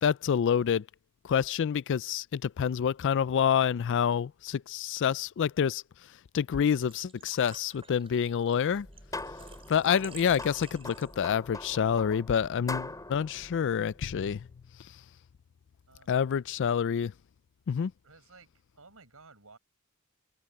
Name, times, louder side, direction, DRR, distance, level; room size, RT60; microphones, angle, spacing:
voice 1, 0.0-0.8 1.2-5.8 6.3-8.9 9.7-14.5 16.1-17.1 17.7-17.9, left 7 dB, 55° left, 0.4 m, -27 dB
Engine / Trickle dribble / Fill (with liquid), 6.5-11.4, right 6 dB, 25° right, 5.4 m, -52 dB
sound 1, 8.7-14.5, left 2 dB, 15° left, 4.0 m, -43 dB
voice 2, 15.9-16.2 18.0-19.6, right 3 dB, 75° right, 7.5 m, -56 dB
open air
head